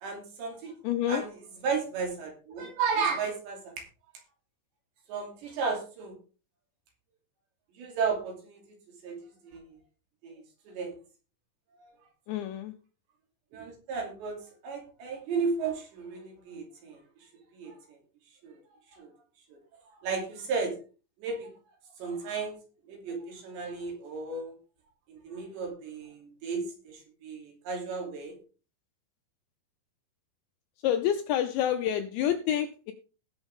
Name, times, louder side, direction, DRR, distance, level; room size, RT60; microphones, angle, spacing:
voice 1, 0.0-0.7 1.1-1.3 1.6-3.7 5.1-6.1 7.8-8.8 9.0-9.2 9.4-9.8 10.2-10.3 10.7-11.0 11.8-11.9 13.5-17.0 17.5-18.0 18.4-18.6 18.9-19.1 19.5-19.6 20.0-20.7 21.2-21.5 22.0-22.6 22.9-24.5 25.1-28.3, right 5 dB, 60° right, 1 dB, 4.8 m, -34 dB
voice 2, 0.8-1.2 12.3-12.7 30.8-32.9, left 10 dB, 80° left, 8 dB, 2.6 m, -28 dB
19.0 x 7.1 x 3.6 m, 0.35 s
omnidirectional pair, 5.9 m